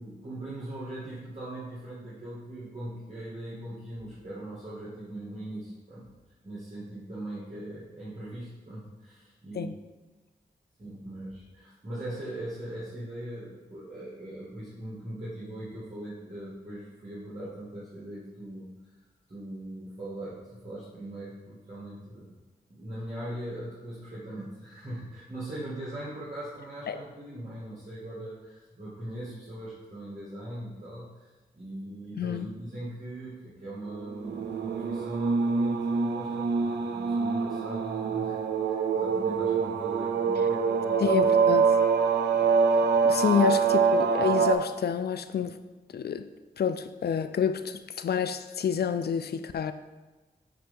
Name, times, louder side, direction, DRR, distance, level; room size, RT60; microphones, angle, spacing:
voice 1, 0.0-6.1 6.4-9.7 10.8-18.7 19.3-22.3 22.7-31.3 31.5-41.2 42.3-42.5 42.8-42.9, right 1 dB, 45° right, -9 dB, 2.3 m, -40 dB
voice 2, 32.2-32.5 41.0-41.7 43.0-45.6 45.9-46.3 46.6-49.7, left 7 dB, 70° left, 11 dB, 0.5 m, -28 dB
sound 1, 34.2-44.5, right 5 dB, 90° right, 0.5 m, -25 dB
8.6 x 3.3 x 5.4 m, 1.2 s
cardioid pair, 50°, 17 cm